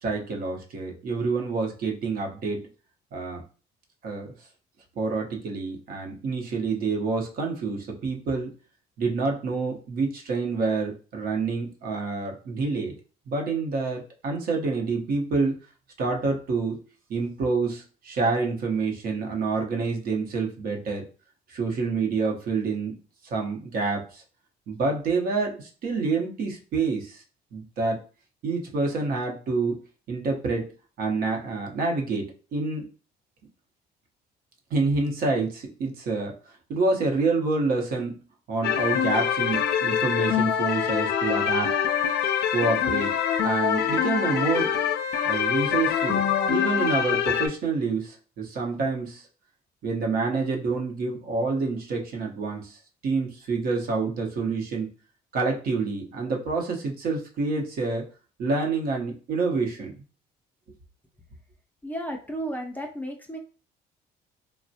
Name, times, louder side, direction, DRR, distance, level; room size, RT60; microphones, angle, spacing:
voice 1, 0.0-2.6 3.1-3.4 4.0-4.3 5.0-8.5 9.0-12.9 13.3-15.6 16.0-16.8 17.1-21.0 21.5-23.0 23.3-24.2 24.7-27.2 27.5-28.0 28.4-29.8 30.1-30.7 31.0-32.8 34.7-36.3 36.7-38.2 38.5-41.7 42.5-43.1 43.4-44.7 45.2-49.3 49.8-52.8 53.0-54.9 55.3-58.1 58.4-59.9, right 4 dB, 60° right, 1 dB, 0.8 m, -27 dB
sound 1, 38.6-47.5, left 8 dB, 70° left, 0.4 m, -24 dB
voice 2, 61.8-63.4, right 1 dB, 10° left, 2 dB, 0.4 m, -33 dB
3.1 x 2.1 x 2.7 m, 0.37 s
cardioid pair, 110°, 17 cm